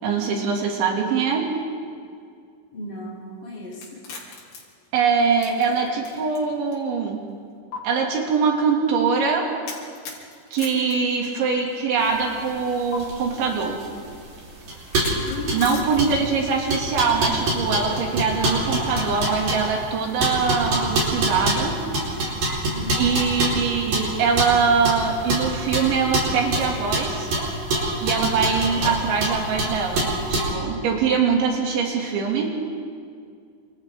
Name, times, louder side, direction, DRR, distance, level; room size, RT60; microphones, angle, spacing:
voice 1, 0.0-1.5 4.9-7.2 7.8-9.5 10.5-13.8 15.5-21.8 23.0-27.3 28.0-32.5, right 5 dB, 75° right, 0 dB, 5.1 m, -23 dB
voice 2, 2.7-4.1 15.1-16.3 22.7-23.2, left 2 dB, 25° left, -7 dB, 3.7 m, -35 dB
sound 1, 3.7-6.4 6.7-6.8 7.7-7.8 9.7-11.8 12.9-13.0 14.9-16.4, left 4 dB, 75° left, 5.6 m, -37 dB
sound 2, 12.1-30.5, right 1 dB, 45° right, 6.0 m, -26 dB
29.0 x 26.5 x 3.8 m, 2.3 s
omnidirectional pair, 5.3 m